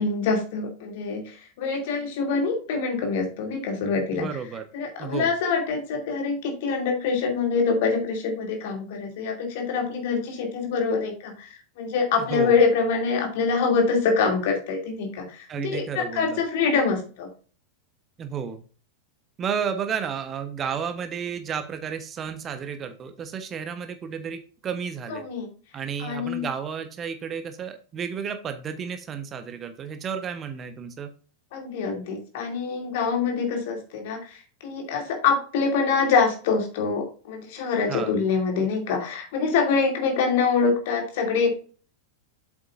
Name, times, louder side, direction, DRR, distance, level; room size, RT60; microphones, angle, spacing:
voice 1, 0.0-4.3 4.7-17.3 25.1-25.5 26.0-26.5 31.5-41.5, left 5 dB, 50° left, 2 dB, 2.7 m, -25 dB
voice 2, 4.1-4.6 5.0-5.3 12.3-12.6 15.5-16.4 18.2-18.6 19.4-25.3 25.7-31.1 37.9-38.1, right 7 dB, 25° right, 9 dB, 1.0 m, -32 dB
8.0 x 7.4 x 2.6 m, 0.38 s
figure-of-eight pair, 90°, 0 cm